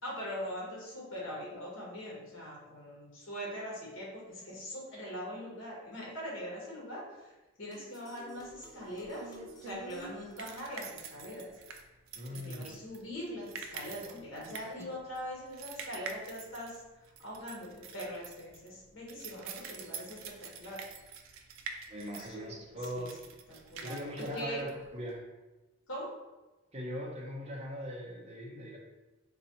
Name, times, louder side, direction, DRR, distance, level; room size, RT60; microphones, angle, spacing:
voice 1, 0.0-9.3 9.6-11.5 12.3-16.8 17.2-20.8 22.2-22.5 22.9-23.2 23.5-24.6 25.9-26.1, equal, 70° left, -4 dB, 1.1 m, -42 dB
sound 1, 7.7-11.2, left 2 dB, 20° left, 0.4 m, -53 dB
sound 2, 8.4-25.2, right 5 dB, 75° right, 0.4 m, -47 dB
voice 2, 12.1-12.8 21.9-23.2 23.8-25.2 26.7-28.8, equal, 30° right, -2 dB, 0.7 m, -40 dB
3.9 x 2.3 x 2.8 m, 1.1 s
head